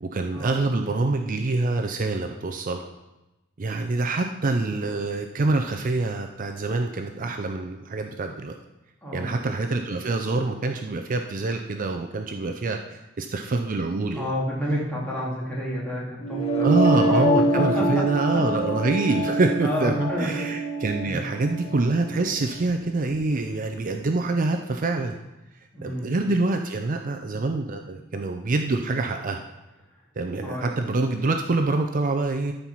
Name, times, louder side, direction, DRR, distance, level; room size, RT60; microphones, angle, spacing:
voice 1, 0.0-2.9 3.6-8.6 9.1-14.3 16.6-25.2 25.8-29.4 30.2-32.5, right 3 dB, 40° right, 5 dB, 0.5 m, -26 dB
voice 2, 9.0-9.3 14.1-17.2 17.5-18.0 18.3-18.4 19.1-19.3 19.6-20.3 21.1-21.2 25.7-26.1 30.4-30.7, equal, 5° left, -6 dB, 2.8 m, -30 dB
sound 1, 16.2-22.2, right 1 dB, 30° left, 1.4 m, -25 dB
13.0 x 4.6 x 5.6 m, 1.0 s
head